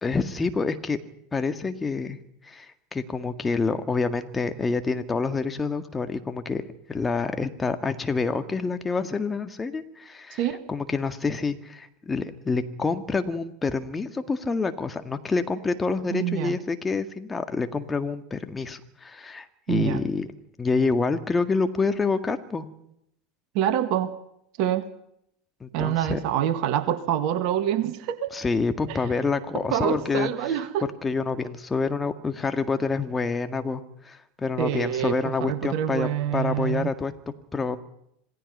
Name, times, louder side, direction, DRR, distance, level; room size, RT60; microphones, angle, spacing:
voice 1, 0.0-1.0 1.3-2.2 2.4-6.6 6.9-10.4 10.7-20.3 20.6-22.7 25.6-26.2 28.3-30.3 31.0-37.1 37.5-37.8, left 4 dB, 20° left, 8 dB, 1.9 m, -27 dB
voice 2, 16.1-16.6 19.7-20.0 23.5-24.1 24.6-24.9 25.7-28.3 28.9-29.0 29.7-30.8 34.6-36.9, right 11 dB, 55° right, 10 dB, 1.6 m, -26 dB
27.0 x 17.5 x 5.6 m, 0.75 s
hypercardioid pair, 85°, 0 cm